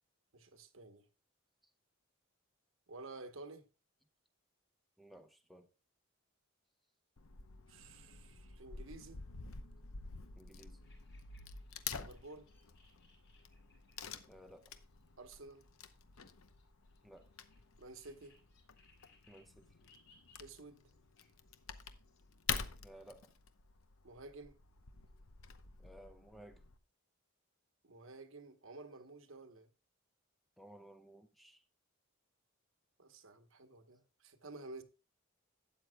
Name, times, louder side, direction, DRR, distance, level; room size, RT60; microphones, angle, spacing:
voice 1, 0.3-1.1 2.9-3.7 7.7-9.2 11.9-12.5 15.2-15.7 17.8-18.4 20.4-20.8 24.0-24.6 27.8-29.7 33.0-34.8, right 3 dB, 70° right, 1.1 m, -52 dB
voice 2, 5.0-5.7 10.4-10.8 14.3-14.8 17.0-17.3 19.3-19.6 22.8-23.3 25.8-26.6 30.6-31.6, right 1 dB, ahead, 0.6 m, -57 dB
Wood / Tearing, 7.2-26.8, left 6 dB, 80° left, 0.8 m, -48 dB
sound 1, 10.8-22.3, left 3 dB, 60° left, 3.9 m, -71 dB
12.5 x 9.0 x 2.3 m
head